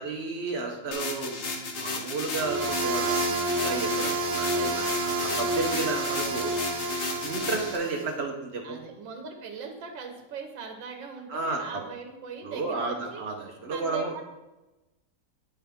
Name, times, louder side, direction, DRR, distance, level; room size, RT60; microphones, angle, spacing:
voice 1, 0.0-6.5 7.2-8.8 11.3-11.8 12.4-14.1, right 3 dB, 55° right, 2 dB, 0.7 m, -32 dB
sound 1, 0.9-7.8, left 3 dB, 50° left, 0.7 m, -34 dB
sound 2, 2.3-8.1, right 2 dB, 70° right, 1.5 m, -29 dB
voice 2, 8.6-13.2 13.7-14.2, right 5 dB, 85° right, 4 dB, 1.6 m, -40 dB
9.9 x 4.5 x 3.5 m, 1.0 s
omnidirectional pair, 2.0 m